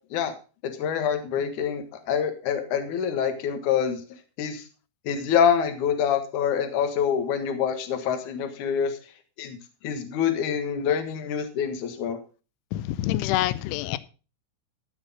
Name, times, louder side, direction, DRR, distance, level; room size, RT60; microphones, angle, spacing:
voice 1, 0.6-4.0 4.4-4.6 5.1-9.0 9.4-9.6 9.8-12.2, left 8 dB, 65° left, 2.1 m, -26 dB
voice 2, 12.7-14.0, left 15 dB, 85° left, 3.1 m, -26 dB
14.0 x 6.3 x 5.5 m
omnidirectional pair, 5.6 m